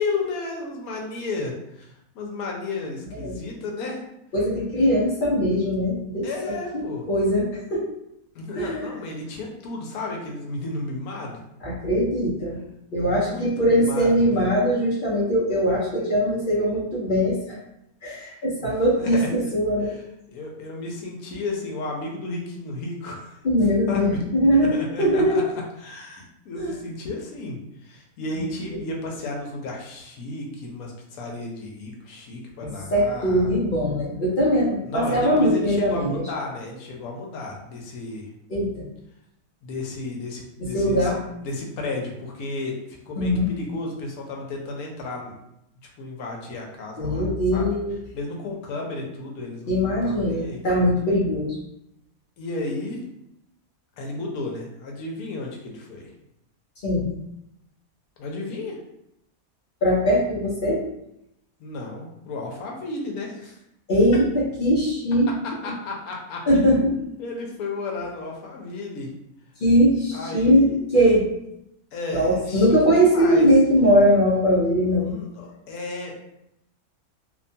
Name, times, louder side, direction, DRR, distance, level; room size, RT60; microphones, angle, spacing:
voice 1, 0.0-4.0 6.2-7.1 8.3-11.4 13.0-14.4 18.2-19.3 20.3-23.4 23.9-24.2 24.5-25.4 25.8-33.5 34.9-38.3 39.6-41.1 41.4-45.3 46.0-47.2 47.5-47.7 48.1-50.6 52.4-53.0 54.0-56.1 58.2-58.8 61.6-63.6 65.6-66.9 67.2-69.1 70.1-70.8 71.9-73.5 74.9-76.2, left 3 dB, 80° left, 0 dB, 1.1 m, -33 dB
voice 2, 4.3-7.9 8.6-8.9 11.6-12.6 12.9-17.6 18.0-19.9 23.4-25.4 26.5-26.8 28.6-28.7 32.6-36.2 38.5-38.8 40.6-41.2 43.2-43.5 47.0-48.0 49.7-51.6 56.8-57.1 59.8-60.8 63.9-65.3 66.5-67.0 69.6-71.3 72.1-75.2, equal, 60° left, -5 dB, 0.5 m, -21 dB
2.8 x 2.2 x 2.6 m, 0.82 s
omnidirectional pair, 1.5 m